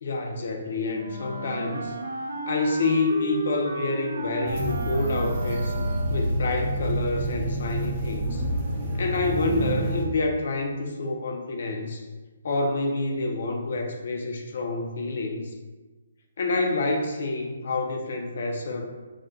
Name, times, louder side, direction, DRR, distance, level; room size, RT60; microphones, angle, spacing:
voice 1, 0.0-1.9 2.5-5.7 6.1-8.4 8.9-12.0 12.4-15.5 16.4-18.8, left 3 dB, 55° left, 3 dB, 0.7 m, -28 dB
Wind instrument woodwind instrument, 0.9-6.4, right 3 dB, 65° right, 0.5 m, -34 dB
sound 1, 4.5-10.1, right 1 dB, 35° right, 0.8 m, -28 dB
6.2 x 2.4 x 2.9 m, 1.2 s
figure-of-eight pair, 135°, 0 cm